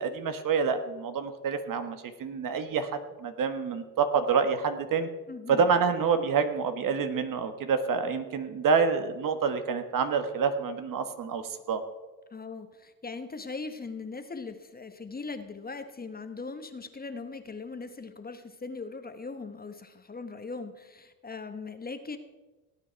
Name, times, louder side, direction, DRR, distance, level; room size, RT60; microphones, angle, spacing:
voice 1, 0.0-5.1 5.5-11.8, right 5 dB, 50° right, 9 dB, 1.5 m, -27 dB
voice 2, 5.3-5.6 12.3-22.2, left 4 dB, 20° left, 8 dB, 1.2 m, -40 dB
18.0 x 8.9 x 4.7 m, 1.2 s
supercardioid pair, 75°, 41 cm